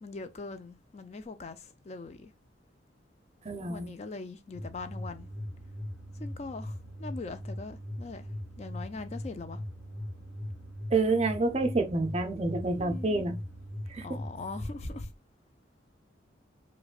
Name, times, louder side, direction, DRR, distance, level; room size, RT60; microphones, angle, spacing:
voice 1, 0.0-2.3 3.7-5.3 6.2-8.3 8.6-9.6 12.8-13.2 14.0-15.1, left 3 dB, 35° left, 0.4 m, -41 dB
voice 2, 3.4-3.9 10.9-13.4 13.9-14.1, right 3 dB, 35° right, 0.5 m, -28 dB
sound 1, 4.5-15.0, left 1 dB, 5° right, 1.4 m, -40 dB
4.8 x 2.2 x 2.3 m
head